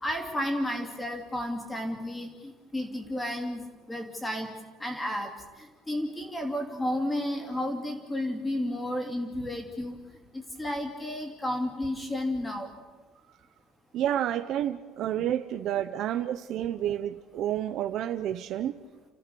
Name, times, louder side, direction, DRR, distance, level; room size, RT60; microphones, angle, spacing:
voice 1, 0.0-4.5 4.8-5.3 5.6-10.0 10.3-12.7, left 1 dB, 10° left, 3 dB, 2.7 m, -32 dB
voice 2, 13.9-18.8, right 11 dB, 45° right, 10 dB, 0.7 m, -30 dB
30.0 x 15.0 x 6.9 m, 1.3 s
cardioid pair, 175°, 0 cm